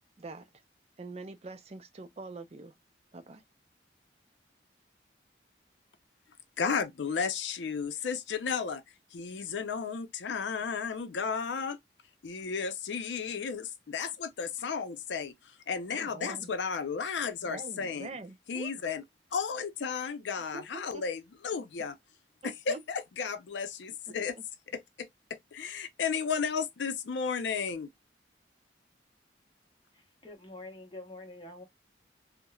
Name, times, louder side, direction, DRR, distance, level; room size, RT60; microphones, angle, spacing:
voice 1, 0.2-0.5 1.0-2.7 3.1-3.4 15.9-16.5 17.4-18.7 20.5-21.0 22.4-22.8 24.1-24.2, right 3 dB, 35° right, 0.4 m, -44 dB
voice 2, 6.6-8.8 9.1-11.8 12.2-18.1 18.5-19.0 19.3-22.0 22.4-24.4 24.7-27.9, left 6 dB, 80° left, 0.5 m, -33 dB
voice 3, 29.9-31.6, left 2 dB, 25° left, 0.7 m, -46 dB
3.0 x 2.0 x 2.2 m
head